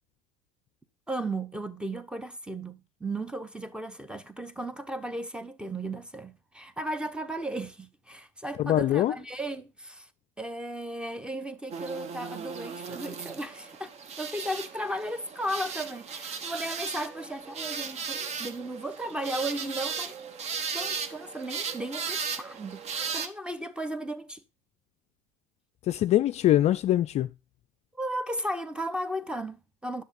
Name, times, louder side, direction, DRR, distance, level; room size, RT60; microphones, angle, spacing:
voice 1, 1.1-10.1 10.4-13.9 14.2-20.2 20.7-24.4 27.9-30.0, right 1 dB, 5° right, 1.1 m, -35 dB
voice 2, 8.6-9.1 25.8-27.3, left 13 dB, 40° left, 0.4 m, -23 dB
sound 1, 11.7-23.3, right 6 dB, 40° right, 1.2 m, -36 dB
10.5 x 6.6 x 5.2 m
hypercardioid pair, 80°, 17 cm